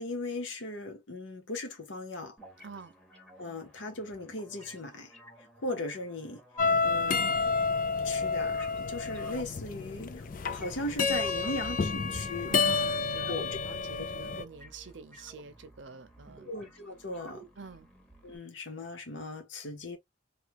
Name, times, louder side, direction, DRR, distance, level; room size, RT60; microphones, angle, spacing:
voice 1, 0.0-2.4 3.4-5.1 5.6-6.4 6.8-7.4 8.0-12.5 13.3-13.6 16.4-17.5 18.2-20.0, left 2 dB, 90° left, 1.1 m, -38 dB
sound 1, 2.4-18.4, right 1 dB, 5° left, 1.1 m, -53 dB
sound 2, 6.6-14.4, left 4 dB, 45° left, 0.4 m, -30 dB
voice 2, 11.4-11.9 12.5-16.5 17.6-17.9, right 4 dB, 80° right, 0.7 m, -47 dB
3.3 x 2.3 x 2.9 m
head